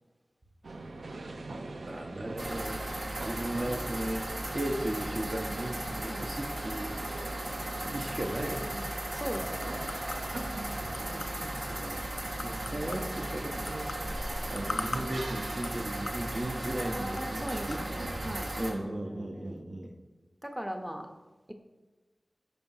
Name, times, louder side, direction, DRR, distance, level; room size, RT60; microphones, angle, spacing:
sound 1, 0.6-18.5, right 2 dB, 90° right, 0.4 m, -42 dB
voice 1, 1.8-2.8 3.2-4.3 4.5-7.2 7.6-8.9 10.8-10.9 11.7-13.9 14.5-17.8 18.6-19.9, right 1 dB, 50° right, 2 dB, 0.7 m, -36 dB
sound 2, 2.4-18.7, right 1 dB, 70° right, 1.1 m, -37 dB
sound 3, 8.4-17.9, left 3 dB, 90° left, 0.3 m, -44 dB
voice 2, 9.1-9.9 11.0-11.6 16.8-19.6 20.4-21.1, equal, 10° right, 4 dB, 0.6 m, -40 dB
5.3 x 3.4 x 5.4 m, 1.2 s
cardioid pair, 40°, 0 cm